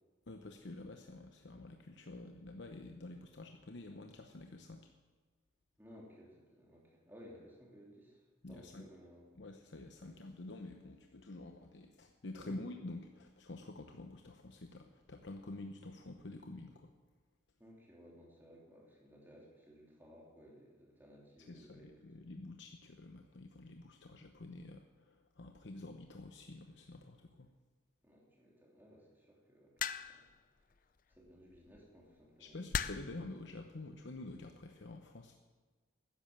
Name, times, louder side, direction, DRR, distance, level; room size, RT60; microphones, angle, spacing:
voice 1, 0.3-4.9 8.4-8.9 9.4-16.9 21.5-27.5 32.4-35.4, left 2 dB, 65° left, 4 dB, 0.9 m, -49 dB
voice 2, 5.8-9.3 12.4-12.6 17.6-21.9 28.0-30.3 31.1-32.7, equal, 10° right, -3 dB, 3.1 m, -58 dB
sound 1, 29.8-30.3 31.5-31.8 32.7-33.2 34.2-34.5, left 7 dB, 45° left, 0.5 m, -37 dB
12.5 x 10.5 x 7.4 m, 1.3 s
head